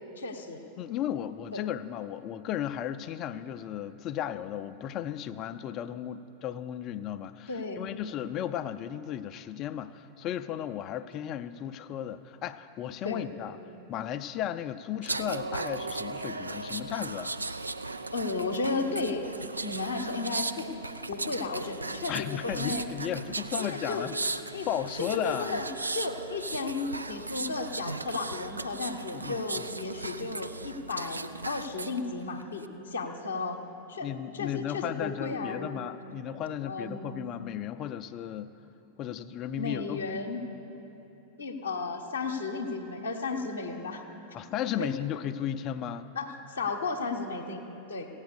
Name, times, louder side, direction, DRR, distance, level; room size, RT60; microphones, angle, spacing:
voice 1, 0.2-0.6 1.5-1.6 7.5-7.8 13.0-13.3 18.1-19.2 19.6-20.7 21.1-22.8 23.6-24.1 24.5-24.7 25.0-25.7 25.9-33.6 33.9-34.1 34.3-35.7 36.6-37.1 39.6-40.4 41.4-44.0 44.8-44.9 46.1-48.1, left 3 dB, 75° left, 0 dB, 0.8 m, -34 dB
voice 2, 0.8-13.6 13.9-17.3 22.1-24.2 24.7-25.6 29.1-29.7 34.0-38.5 39.0-40.2 44.3-46.1, left 10 dB, 35° left, 12 dB, 0.4 m, -35 dB
sound 1, 15.0-32.0 32.4-32.7, right 3 dB, 80° right, 0.4 m, -37 dB
16.0 x 9.0 x 6.7 m, 3.0 s
figure-of-eight pair, 90°, 0 cm